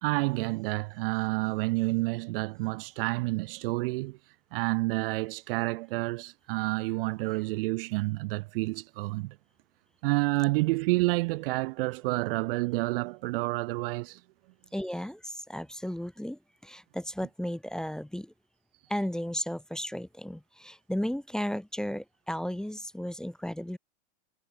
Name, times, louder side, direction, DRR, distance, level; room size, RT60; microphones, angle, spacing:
voice 1, 0.0-4.2 4.5-9.3 10.0-14.2, right 23 dB, 55° right, 0.4 m, -29 dB
voice 2, 14.7-18.3 18.9-23.8, equal, ahead, 0.7 m, -34 dB
supercardioid pair, 125°, 35 cm